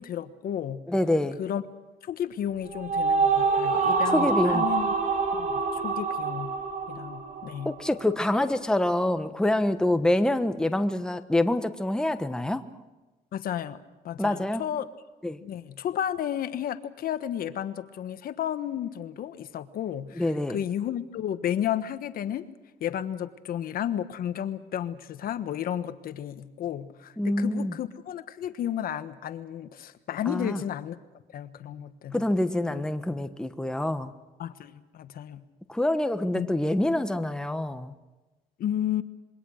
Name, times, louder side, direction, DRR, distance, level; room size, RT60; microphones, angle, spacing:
voice 1, 0.0-0.8 1.4-1.6 2.0-4.9 5.3-6.6 6.9-7.8 13.3-13.8 14.0-14.9 15.4-22.4 22.8-31.0 31.3-32.2 32.7-32.8 34.4-35.4 36.3-36.5 38.6-39.0, left 10 dB, 60° left, 11 dB, 1.3 m, -32 dB
voice 2, 0.9-1.4 4.1-4.7 7.6-12.6 14.2-14.6 15.2-15.4 20.2-20.6 27.2-27.7 30.3-30.6 32.1-34.1 35.7-37.9, left 1 dB, 5° left, 8 dB, 1.2 m, -26 dB
sound 1, 2.5-8.0, right 4 dB, 50° right, 3.9 m, -26 dB
26.5 x 23.0 x 6.5 m, 1.1 s
cardioid pair, 110°, 17 cm